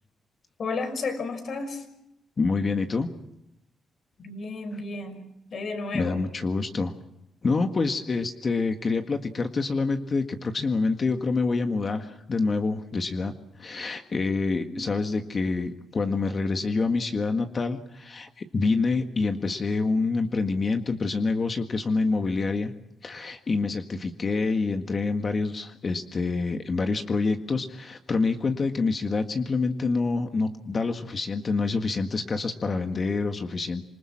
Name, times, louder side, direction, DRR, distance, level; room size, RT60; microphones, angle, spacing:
voice 1, 0.6-1.8 4.2-5.2 5.5-6.2 14.5-14.8, left 3 dB, 60° left, 8 dB, 6.0 m, -32 dB
voice 2, 2.4-3.1 5.9-6.9 7.4-13.3 13.6-22.7 23.0-33.9, left 3 dB, 45° left, 6 dB, 1.8 m, -27 dB
27.0 x 21.0 x 7.5 m, 0.85 s
cardioid pair, 70°, 0 cm